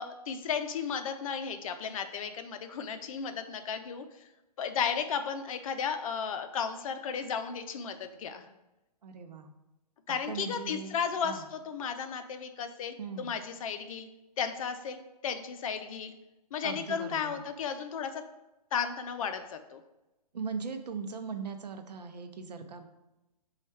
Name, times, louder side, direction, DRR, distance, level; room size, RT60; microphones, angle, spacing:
voice 1, 0.0-4.0 4.6-8.5 10.1-14.1 14.4-16.1 16.5-18.2 18.7-19.8, left 6 dB, 55° left, 8 dB, 0.5 m, -34 dB
voice 2, 9.0-9.5 10.1-11.0 11.2-11.5 13.0-13.4 16.6-17.4 20.3-22.9, right 5 dB, 85° right, 7 dB, 0.6 m, -39 dB
4.5 x 2.4 x 4.3 m, 0.99 s
hypercardioid pair, 130°, 20 cm